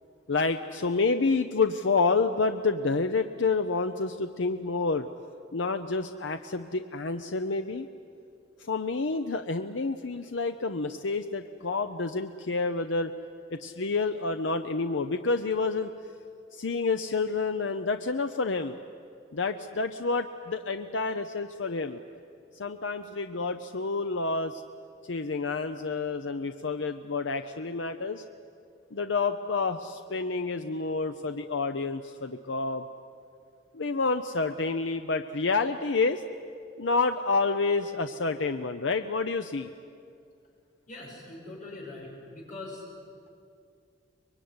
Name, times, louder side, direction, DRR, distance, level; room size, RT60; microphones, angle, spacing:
voice 1, 0.3-5.1 5.5-7.9 8.6-13.1 13.5-15.9 16.5-18.8 19.3-22.0 22.5-24.6 25.0-28.2 28.9-32.9 33.7-36.2 36.8-39.7, left 4 dB, 80° left, 8 dB, 0.8 m, -29 dB
voice 2, 40.9-42.8, left 2 dB, 45° left, -2 dB, 7.0 m, -42 dB
24.5 x 22.0 x 9.7 m, 2.4 s
head